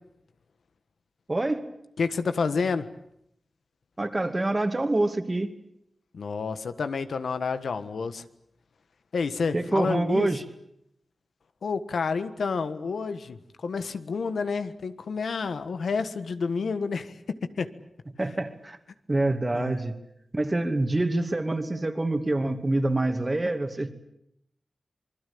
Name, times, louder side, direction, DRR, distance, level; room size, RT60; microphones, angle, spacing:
voice 1, 1.3-1.7 4.0-5.5 9.5-10.4 18.2-18.8 19.1-19.9 20.3-23.9, right 2 dB, 25° right, 8 dB, 2.5 m, -26 dB
voice 2, 2.0-2.9 6.1-8.2 9.1-10.4 11.6-17.1 17.4-17.7 18.2-18.3 19.5-19.8, left 5 dB, 85° left, 10 dB, 1.4 m, -29 dB
26.5 x 21.0 x 8.7 m, 0.76 s
wide cardioid pair, 85°, 0 cm